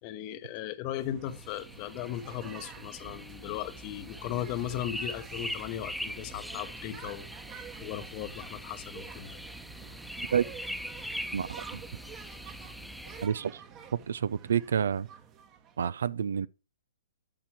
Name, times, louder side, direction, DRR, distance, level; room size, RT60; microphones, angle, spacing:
voice 1, 0.0-7.3 7.8-9.4, left 12 dB, 35° left, 1.0 m, -37 dB
sound 1, 1.0-15.9, right 8 dB, 25° right, 1.2 m, -49 dB
sound 2, 1.3-13.3, equal, ahead, 0.4 m, -42 dB
voice 2, 14.1-15.1 15.8-16.5, right 8 dB, 75° right, 0.5 m, -28 dB
8.7 x 6.0 x 4.9 m
hypercardioid pair, 140°, 0 cm